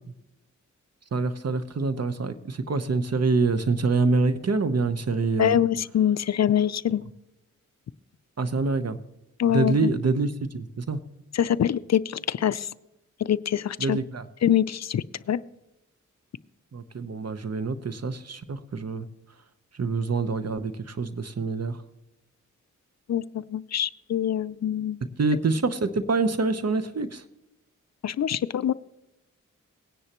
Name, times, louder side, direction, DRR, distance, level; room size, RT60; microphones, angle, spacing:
voice 1, 1.1-5.6 8.4-9.0 9.5-11.0 13.8-14.2 16.7-19.0 19.7-21.8 25.2-27.2, right 3 dB, 55° right, 10 dB, 1.0 m, -26 dB
voice 2, 5.4-7.0 9.4-9.9 11.3-12.7 13.2-14.0 14.4-15.4 23.1-25.0 28.0-28.7, left 10 dB, 60° left, 17 dB, 0.4 m, -24 dB
18.5 x 9.9 x 3.0 m, 0.92 s
cardioid pair, 45°, 31 cm